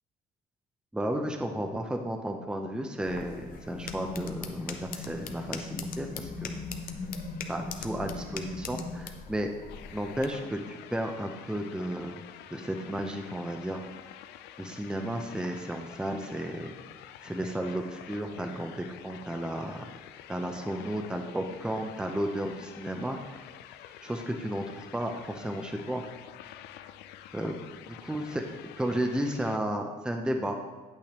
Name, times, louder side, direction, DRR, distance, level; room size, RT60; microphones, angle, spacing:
voice 1, 0.9-6.6 7.5-9.5 9.9-12.2 12.5-13.9 14.6-16.7 17.2-19.9 20.3-23.4 24.0-26.0 27.3-27.6 28.0-30.5, right 1 dB, 5° right, 3 dB, 0.6 m, -33 dB
sound 1, 3.0-10.3, left 7 dB, 60° left, 0.8 m, -43 dB
sound 2, 3.7-9.0, left 2 dB, 35° left, 1.4 m, -39 dB
sound 3, 9.7-29.6, left 11 dB, 85° left, 0.4 m, -48 dB
8.7 x 8.4 x 3.1 m, 1.2 s
cardioid pair, 110°, 17 cm